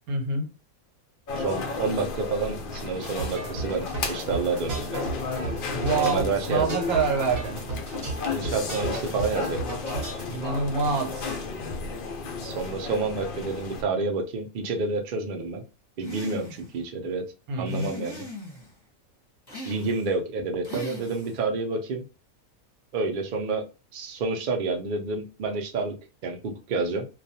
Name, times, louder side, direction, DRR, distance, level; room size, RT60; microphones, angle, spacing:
voice 1, 0.1-0.5 5.8-7.6 10.2-11.4 17.5-17.9, right 4 dB, 90° right, 1.2 m, -26 dB
sound 1, 1.3-13.8, left 4 dB, 70° left, 0.5 m, -33 dB
voice 2, 1.4-5.0 5.4-5.6 5.9-6.8 8.3-9.8 12.4-15.6 16.0-17.3 17.6-18.2 19.6-22.0 22.9-26.0 26.2-27.1, right 3 dB, 60° right, 0.5 m, -29 dB
sound 2, 3.0-10.2, right 2 dB, 40° right, 0.9 m, -35 dB
sound 3, 16.0-16.8 17.7-18.7 19.5-20.2 20.6-21.4, left 1 dB, 20° left, 0.7 m, -40 dB
2.4 x 2.2 x 2.7 m
omnidirectional pair, 1.5 m